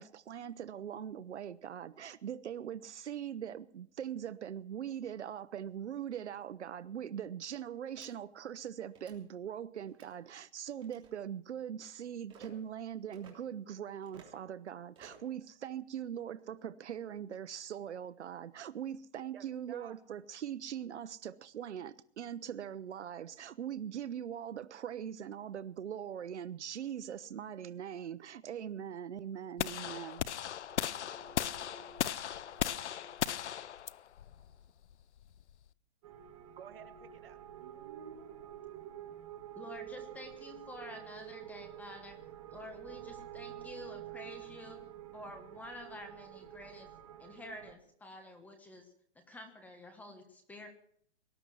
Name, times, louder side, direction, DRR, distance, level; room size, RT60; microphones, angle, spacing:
voice 1, 0.0-30.3, right 9 dB, 85° right, 16 dB, 0.8 m, -41 dB
sound 1, 8.0-8.1 8.9-9.2 9.9-10.1 10.8-11.1 12.3-12.5 13.1-13.3 14.0-14.4 15.0-15.3, right 6 dB, 15° right, 3.2 m, -56 dB
voice 2, 19.3-20.0 30.7-33.9 34.5-34.6 36.6-37.4, right 7 dB, 55° right, 6 dB, 2.3 m, -56 dB
sound 2, 29.6-35.7, left 10 dB, 85° left, 0.7 m, -37 dB
sound 3, 36.0-47.7, right 11 dB, 30° right, 1.8 m, -48 dB
voice 3, 39.5-42.2 42.5-44.8 45.1-46.9 47.2-50.7, left 1 dB, 5° left, 7 dB, 1.1 m, -49 dB
19.0 x 11.5 x 6.2 m, 0.64 s
hypercardioid pair, 160°, 34 cm